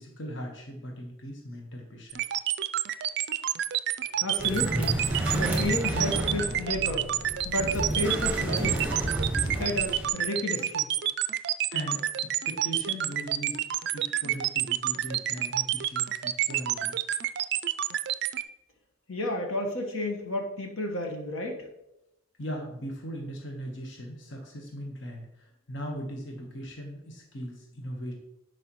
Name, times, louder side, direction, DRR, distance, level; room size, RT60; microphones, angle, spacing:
voice 1, 0.0-2.2 11.7-13.6 13.9-16.9 22.4-25.3 25.7-28.1, equal, 55° left, 0 dB, 1.2 m, -39 dB
sound 1, 2.1-18.4, right 12 dB, 50° right, 0.4 m, -28 dB
sound 2, 4.0-10.9, right 2 dB, 30° left, 2.9 m, -49 dB
voice 2, 4.2-5.0 5.3-7.1 7.4-8.9 9.6-10.9 19.1-21.7, left 2 dB, 80° left, 2 dB, 1.3 m, -31 dB
sound 3, 4.4-10.1, right 1 dB, 5° right, 1.0 m, -30 dB
10.5 x 5.0 x 3.1 m, 0.87 s
head